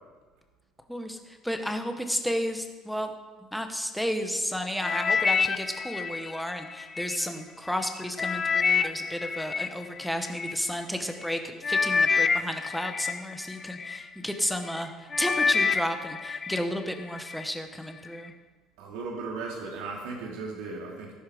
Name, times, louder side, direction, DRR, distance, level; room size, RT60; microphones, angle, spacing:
voice 1, 0.9-3.1 3.5-18.3, equal, ahead, 5 dB, 1.0 m, -32 dB
sound 1, 4.8-7.2 7.7-10.5 11.2-11.4 11.6-14.0 14.5-14.8 15.1-16.6 17.0-17.4 18.1-18.2, left 5 dB, 20° left, 0.5 m, -27 dB
voice 2, 18.8-21.1, right 4 dB, 85° right, -2 dB, 3.0 m, -36 dB
14.0 x 13.0 x 5.0 m, 1.3 s
cardioid pair, 165°, 0 cm